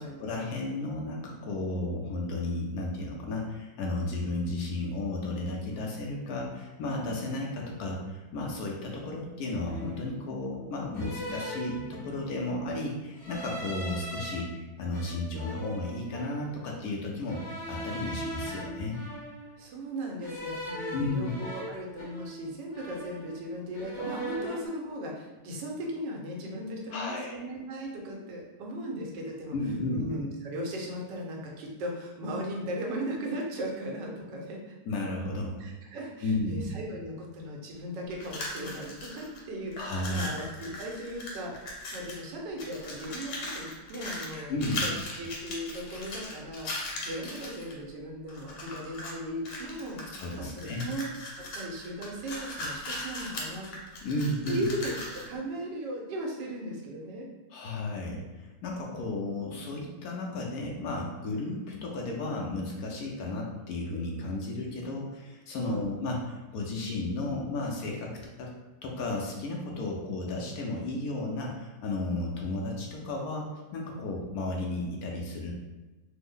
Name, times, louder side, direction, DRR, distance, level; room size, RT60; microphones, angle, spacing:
voice 1, 0.2-19.0 20.9-21.3 26.9-27.4 29.5-30.1 34.9-35.6 36.2-36.6 39.8-40.3 44.5-44.8 50.1-50.9 54.0-54.7 57.5-68.5 68.8-75.5, left 2 dB, 70° left, -1 dB, 1.0 m, -33 dB
sound 1, 8.5-8.8 9.6-10.2 10.9-12.4 13.2-14.4 14.9-16.5 17.3-19.6 20.2-22.5 22.7-23.5 23.7-24.7, right 1 dB, 50° left, 1.2 m, -40 dB
voice 2, 19.6-29.5 29.9-34.7 35.6-41.5 41.9-46.7 47.0-51.1 51.5-53.7 54.5-57.3 65.6-65.9, equal, 90° right, -1 dB, 1.4 m, -37 dB
sound 2, 38.1-39.4 39.7-42.3 42.6-47.7 48.3-49.2 49.4-55.3, left 1 dB, 90° left, 1.4 m, -38 dB
3.3 x 2.1 x 3.6 m, 1.2 s
omnidirectional pair, 1.8 m